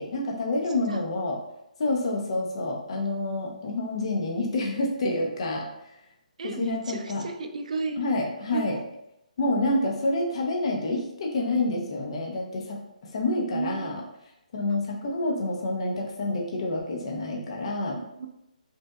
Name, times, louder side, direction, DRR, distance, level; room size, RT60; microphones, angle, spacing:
voice 1, 0.0-1.4 1.8-5.7 6.6-7.2 8.0-8.8 9.4-12.8 13.1-14.0 14.5-18.0, left 2 dB, 45° left, 0 dB, 0.9 m, -28 dB
voice 2, 6.4-8.0 8.5-8.8 13.5-13.9 17.9-18.3, right 4 dB, 60° right, 5 dB, 0.5 m, -33 dB
5.4 x 2.6 x 2.3 m, 0.85 s
hypercardioid pair, 160°, 4 cm